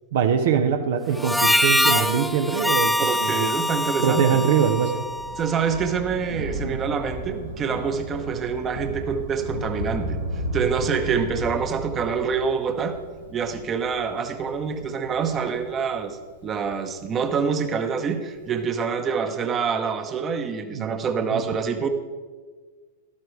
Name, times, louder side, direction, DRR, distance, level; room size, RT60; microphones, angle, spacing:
voice 1, 0.1-3.5 4.0-4.9 20.7-21.4, right 7 dB, 65° right, 6 dB, 0.8 m, -23 dB
Harmonica, 1.2-5.8, left 1 dB, ahead, 0.5 m, -24 dB
voice 2, 3.0-4.4 5.4-10.2 10.5-13.0 13.3-16.2 16.4-21.9, right 6 dB, 30° right, 7 dB, 1.0 m, -26 dB
Thunder, 4.8-17.5 18.4-18.5, right 1 dB, 90° right, 1.6 m, -34 dB
12.5 x 12.0 x 3.3 m, 1.5 s
hypercardioid pair, 105°, 0 cm